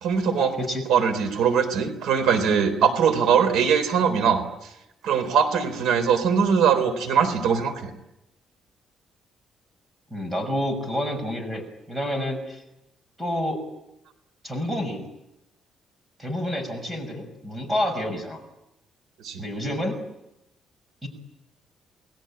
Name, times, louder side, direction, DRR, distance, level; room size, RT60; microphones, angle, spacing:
voice 1, 0.0-0.6 0.9-4.7 5.0-7.9 19.2-19.4, right 7 dB, 85° right, 9 dB, 3.9 m, -21 dB
voice 2, 10.1-12.6 13.2-13.6 14.4-15.1 16.2-18.4 19.4-20.0 21.0-21.1, left 1 dB, 10° right, 7 dB, 6.1 m, -28 dB
29.5 x 21.0 x 8.9 m, 0.87 s
cardioid pair, 170°, 0 cm